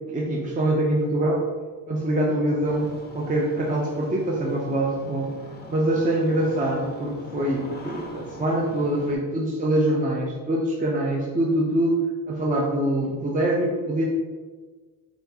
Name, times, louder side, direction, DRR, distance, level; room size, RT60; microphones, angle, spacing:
voice 1, 0.1-1.4 1.9-5.3 5.7-14.0, right 1 dB, 15° right, -2 dB, 0.6 m, -24 dB
Engine starting, 2.6-9.2, left 2 dB, 20° left, 0.7 m, -42 dB
4.5 x 3.7 x 2.8 m, 1.4 s
cardioid pair, 95°, 47 cm